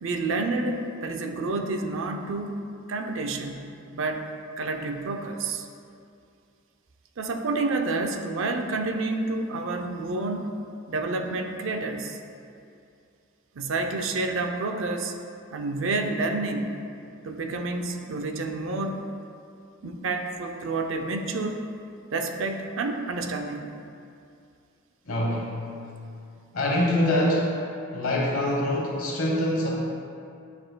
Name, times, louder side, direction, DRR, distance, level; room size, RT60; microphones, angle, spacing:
voice 1, 0.0-2.6 2.9-4.3 4.6-5.7 7.2-10.6 10.9-12.2 13.6-15.1 15.5-16.8 17.2-19.1 19.8-21.7 22.1-23.7, right 3 dB, 65° right, 4 dB, 0.5 m, -29 dB
voice 2, 25.1-25.7 26.5-27.6 27.9-29.7, left 1 dB, 80° left, -4 dB, 1.0 m, -24 dB
10.0 x 4.2 x 2.2 m, 2.5 s
head